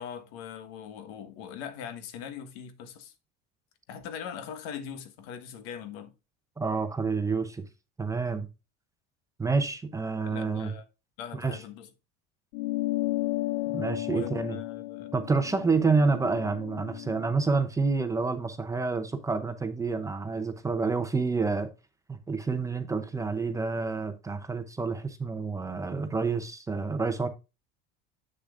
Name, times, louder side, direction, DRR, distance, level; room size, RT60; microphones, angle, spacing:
voice 1, 0.0-3.1 3.9-6.1 10.2-10.8 11.2-11.9 14.1-15.1, left 8 dB, 85° left, 1.5 m, -41 dB
voice 2, 6.6-7.6 8.0-8.5 9.4-10.7 11.3-11.6 13.7-14.6 15.1-21.7 22.1-27.3, right 4 dB, 10° right, 0.6 m, -28 dB
sound 1, 12.5-17.3, left 18 dB, 70° left, 0.5 m, -33 dB
7.8 x 6.9 x 2.5 m
cardioid pair, 155°, 30 cm